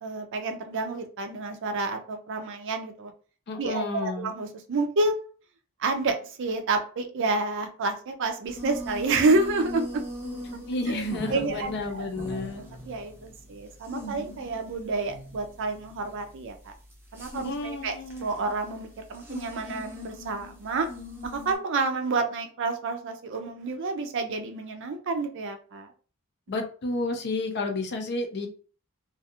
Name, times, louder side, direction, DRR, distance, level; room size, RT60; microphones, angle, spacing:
voice 1, 0.0-3.1 3.6-5.2 5.8-10.0 10.9-11.0 11.3-12.4 12.9-16.7 17.1-20.9 21.2-25.9, right 3 dB, 55° right, 6 dB, 0.5 m, -29 dB
voice 2, 3.5-4.3 10.7-12.7 17.4-18.3 26.5-28.5, left 2 dB, 50° left, 5 dB, 0.5 m, -31 dB
sound 1, 8.5-21.6, equal, 10° right, 0.6 m, -40 dB
2.5 x 2.3 x 2.8 m, 0.39 s
head